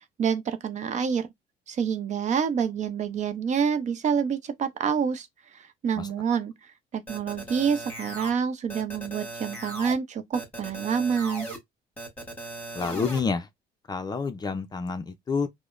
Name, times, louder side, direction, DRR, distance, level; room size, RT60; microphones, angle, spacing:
voice 1, 0.2-1.3 1.7-5.3 5.5-6.5 6.9-11.5, right 7 dB, 45° right, 0.5 m, -27 dB
sound 1, 7.1-8.3 8.7-9.9 10.3-11.6 12.0-13.2, right 1 dB, 10° left, 1.5 m, -37 dB
voice 2, 12.7-13.5 13.9-15.5, left 5 dB, 25° left, 0.4 m, -28 dB
4.8 x 2.0 x 2.4 m
cardioid pair, 110°, 17 cm